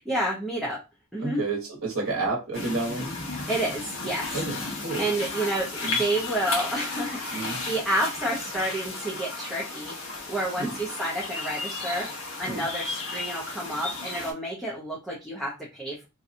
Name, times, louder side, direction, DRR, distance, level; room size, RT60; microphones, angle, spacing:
voice 1, 0.1-0.8 1.1-1.4 3.5-4.4 5.0-9.9 10.3-16.1, right 1 dB, ahead, -5 dB, 0.5 m, -30 dB
voice 2, 1.2-3.1 4.3-5.0 5.8-6.0 7.3-7.6 10.6-10.8 12.4-12.6, right 3 dB, 75° right, -1 dB, 1.0 m, -30 dB
sound 1, 2.5-14.3, left 3 dB, 75° left, 0.9 m, -34 dB
2.7 x 2.2 x 2.5 m, 0.27 s
head